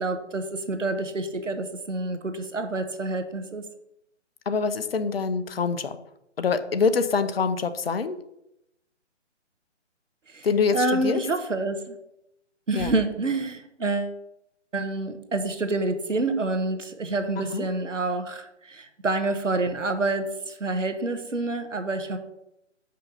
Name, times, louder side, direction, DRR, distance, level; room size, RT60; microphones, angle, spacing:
voice 1, 0.0-3.6 10.3-10.5 10.7-11.9 12.7-14.1 14.7-22.2, right 2 dB, 85° right, 8 dB, 1.3 m, -28 dB
voice 2, 4.5-6.0 6.4-8.2 10.4-11.2 12.7-12.9 17.4-17.7, left 5 dB, 50° left, 11 dB, 0.8 m, -25 dB
6.4 x 5.6 x 5.7 m, 0.83 s
figure-of-eight pair, 145°, 36 cm